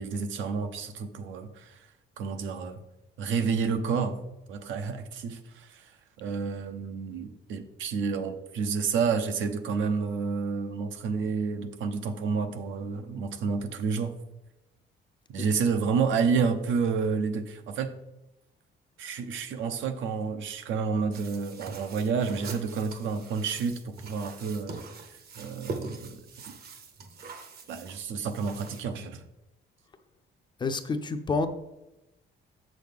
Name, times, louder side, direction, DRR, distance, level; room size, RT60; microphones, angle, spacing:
voice 1, 0.0-1.8 2.2-2.8 3.2-5.9 6.2-14.1 15.3-17.9 19.0-24.8 25.1-26.2 27.7-29.2, right 5 dB, 80° right, 8 dB, 0.8 m, -30 dB
sound 1, 21.1-28.8, right 4 dB, 50° right, 0.9 m, -43 dB
voice 2, 30.6-31.5, left 4 dB, 25° left, 8 dB, 0.4 m, -28 dB
7.5 x 6.2 x 3.5 m, 0.93 s
cardioid pair, 165°, 20 cm